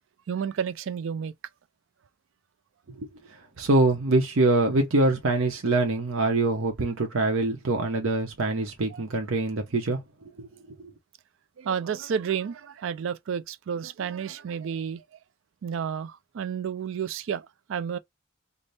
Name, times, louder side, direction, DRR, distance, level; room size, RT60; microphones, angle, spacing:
voice 1, 0.3-1.3 8.9-9.0 11.6-15.0 15.6-18.0, right 7 dB, 70° right, 0.4 m, -31 dB
voice 2, 3.6-10.0 10.4-10.5 10.8-10.9, right 2 dB, 85° right, 0.7 m, -24 dB
3.4 x 2.0 x 3.9 m
head